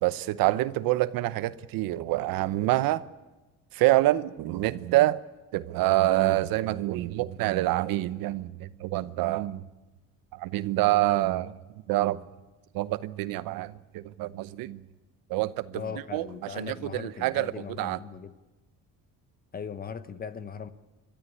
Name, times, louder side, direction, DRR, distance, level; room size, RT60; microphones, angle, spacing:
voice 1, 0.0-3.0 3.7-5.2 5.5-9.6 10.3-11.5 11.9-12.2 12.7-14.8 15.3-15.8 16.1-16.3 16.6-18.0, right 16 dB, 80° right, 0.9 m, -26 dB
voice 2, 15.7-18.3 19.5-20.7, left 6 dB, 25° left, 1.0 m, -39 dB
29.5 x 13.0 x 9.9 m
cardioid pair, 155°, 34 cm